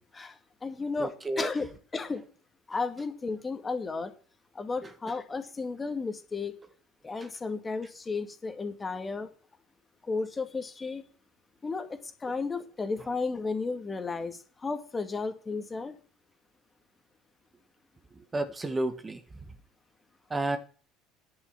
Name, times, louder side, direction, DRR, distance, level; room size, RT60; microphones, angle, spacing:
voice 1, 0.1-1.7 1.9-2.2 2.7-4.1 4.5-6.5 7.0-9.3 10.1-11.0 11.6-15.9, left 4 dB, 25° left, 7 dB, 2.3 m, -33 dB
voice 2, 1.0-1.5 4.8-4.9 18.3-19.2 20.3-20.6, right 2 dB, 20° right, 8 dB, 1.7 m, -31 dB
10.5 x 7.3 x 7.5 m, 0.39 s
hypercardioid pair, 65°, 0 cm